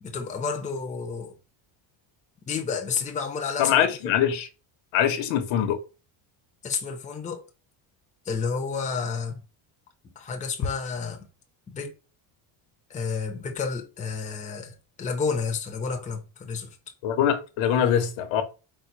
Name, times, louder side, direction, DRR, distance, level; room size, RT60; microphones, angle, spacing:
voice 1, 0.0-1.3 2.5-3.8 6.6-7.4 8.3-9.4 10.2-11.3 11.7-11.9 12.9-16.8, left 5 dB, 15° left, 0.7 m, -30 dB
voice 2, 3.6-4.5 4.9-5.8 17.0-18.4, left 9 dB, 65° left, 1.0 m, -23 dB
4.2 x 2.2 x 4.6 m
cardioid pair, 150°, 48 cm